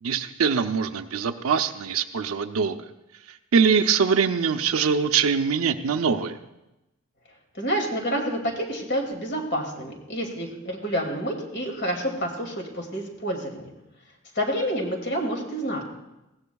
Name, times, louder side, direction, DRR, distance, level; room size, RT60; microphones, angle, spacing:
voice 1, 0.0-2.8 3.5-6.4, right 6 dB, 85° right, 6 dB, 0.6 m, -23 dB
voice 2, 7.5-13.7 14.3-15.8, equal, 50° left, 2 dB, 2.3 m, -28 dB
20.0 x 16.0 x 2.3 m, 0.96 s
head